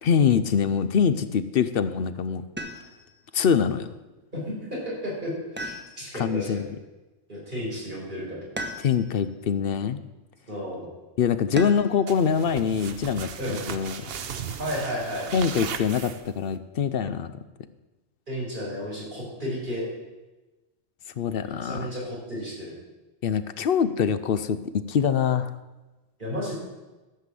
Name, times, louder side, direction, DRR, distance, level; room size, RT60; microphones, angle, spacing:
voice 1, 0.0-2.4 3.3-3.9 6.2-6.7 8.8-10.0 11.2-14.0 15.3-17.3 21.2-21.9 23.2-25.5, left 7 dB, 60° left, 12 dB, 0.8 m, -24 dB
sound 1, 2.6-3.2 5.6-6.4 8.6-9.3 11.6-12.1 13.8-14.4, equal, 10° right, 0.8 m, -37 dB
voice 2, 4.3-6.6 7.3-8.4 10.5-10.9 13.4-13.6 14.6-15.3 18.3-19.9 21.4-22.7 26.2-26.5, equal, 45° right, -5 dB, 5.0 m, -33 dB
sound 2, 12.1-16.5, right 7 dB, 60° right, 0.9 m, -37 dB
13.5 x 5.8 x 7.6 m, 1.1 s
omnidirectional pair, 1.2 m